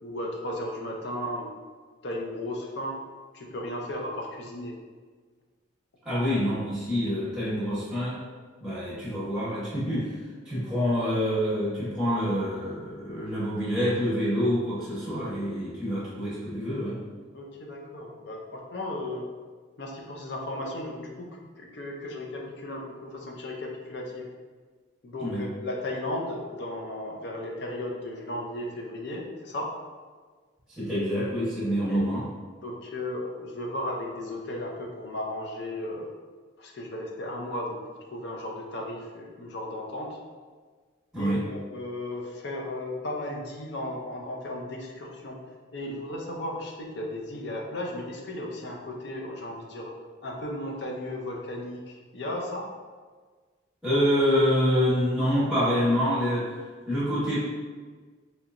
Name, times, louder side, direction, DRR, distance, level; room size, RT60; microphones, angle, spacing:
voice 1, 0.0-1.6 2.0-3.0 3.3-4.8 17.3-19.2 19.8-24.3 25.0-29.7 31.9-32.0 32.6-36.1 36.6-40.2 41.2-45.4 45.7-49.9 50.2-52.7, left 1 dB, 60° left, 0 dB, 0.5 m, -35 dB
voice 2, 6.0-8.2 8.6-10.1 10.4-17.0 25.2-25.4 30.8-32.2 41.1-41.4 53.8-56.4 56.9-57.4, equal, 5° right, -10 dB, 0.9 m, -26 dB
3.1 x 2.8 x 2.4 m, 1.5 s
head